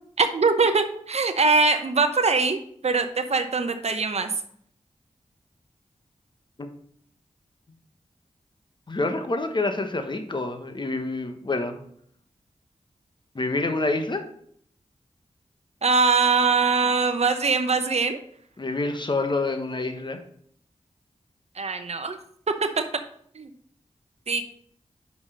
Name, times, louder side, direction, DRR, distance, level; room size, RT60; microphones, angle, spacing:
voice 1, 0.2-2.6 2.8-4.3 15.8-18.2 21.6-22.2 22.6-22.8 23.3-23.5 24.3-24.4, right 4 dB, 55° right, 7 dB, 0.8 m, -22 dB
voice 2, 8.9-11.8 13.3-14.2 18.6-20.2, left 2 dB, 40° left, 6 dB, 1.1 m, -27 dB
5.4 x 4.8 x 6.3 m, 0.64 s
cardioid pair, 45°, 13 cm